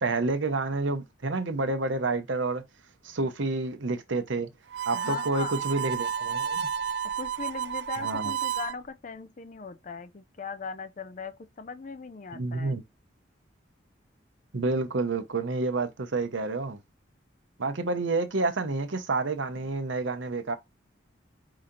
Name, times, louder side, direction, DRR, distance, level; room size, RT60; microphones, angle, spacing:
voice 1, 0.0-2.6 3.0-4.5 4.9-6.7 8.0-8.3 12.3-12.8 14.5-16.8 17.6-20.5, right 3 dB, 75° right, 0.8 m, -29 dB
Harmonica, 4.7-8.8, right 8 dB, 60° right, 0.4 m, -31 dB
voice 2, 4.9-5.6 7.0-12.8, left 5 dB, 40° left, 0.4 m, -39 dB
5.0 x 2.8 x 3.8 m
head